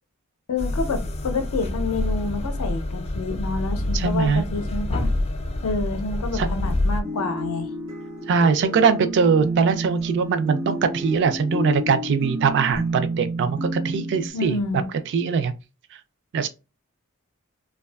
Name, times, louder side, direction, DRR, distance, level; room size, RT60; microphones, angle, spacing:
voice 1, 0.5-5.1 5.6-7.7 14.3-14.9, left 3 dB, 80° left, 0.5 m, -28 dB
sound 1, 0.6-7.0, left 1 dB, 30° left, 0.3 m, -27 dB
voice 2, 3.9-4.4 6.3-6.5 8.3-14.6 15.1-15.5 16.3-16.5, right 5 dB, 55° right, 0.3 m, -21 dB
sound 2, 7.0-14.3, right 1 dB, 80° right, 0.7 m, -30 dB
2.5 x 2.3 x 2.2 m
head